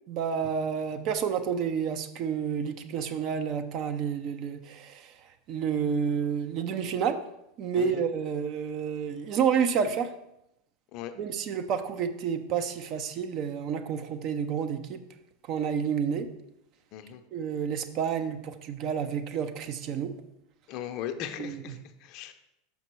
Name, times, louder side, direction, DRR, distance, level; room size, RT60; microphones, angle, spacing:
voice 1, 0.1-5.1 5.5-7.2 7.6-10.1 11.2-15.0 15.5-16.3 17.3-20.1 21.4-21.7, right 7 dB, 50° right, 8 dB, 0.6 m, -29 dB
voice 2, 16.9-17.2 20.7-22.3, left 10 dB, 50° left, 8 dB, 0.6 m, -38 dB
5.9 x 5.4 x 4.5 m, 0.85 s
hypercardioid pair, 85°, 0 cm